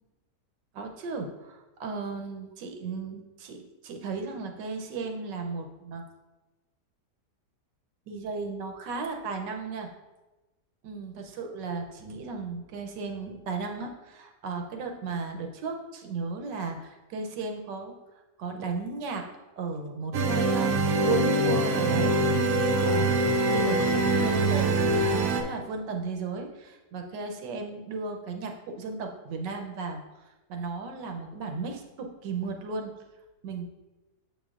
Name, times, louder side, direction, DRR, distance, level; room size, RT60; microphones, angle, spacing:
voice 1, 0.7-6.0 8.1-9.9 10.8-17.9 18.4-19.3 19.6-20.7 21.0-22.2 22.8-23.2 23.5-30.0 30.5-32.9 33.4-33.7, right 4 dB, 90° right, 3 dB, 1.4 m, -35 dB
sound 1, 20.1-25.4, right 2 dB, 70° right, 1.0 m, -24 dB
7.7 x 5.2 x 2.4 m, 1.1 s
omnidirectional pair, 1.8 m